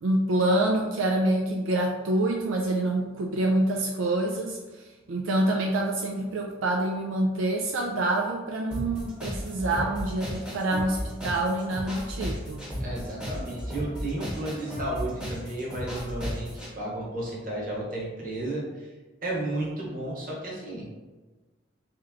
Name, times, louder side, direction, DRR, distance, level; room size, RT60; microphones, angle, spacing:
voice 1, 0.0-4.8 5.1-11.0 11.2-12.7, right 1 dB, 80° right, 1 dB, 0.4 m, -26 dB
sound 1, 8.7-16.7, equal, 5° right, 0.9 m, -35 dB
voice 2, 12.8-18.9 19.2-20.9, right 1 dB, 45° right, -4 dB, 1.1 m, -33 dB
3.2 x 3.0 x 3.6 m, 1.2 s
head